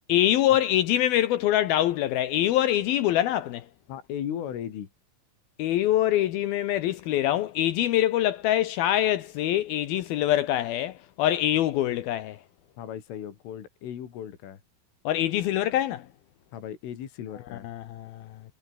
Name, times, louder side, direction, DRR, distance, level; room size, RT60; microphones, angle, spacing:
voice 1, 0.1-3.7 5.6-12.4 15.0-16.1 17.6-18.3, left 13 dB, 90° left, 2.1 m, -24 dB
voice 2, 3.9-4.9 12.8-14.6 16.5-17.7, left 9 dB, 70° left, 5.5 m, -36 dB
omnidirectional pair, 5.9 m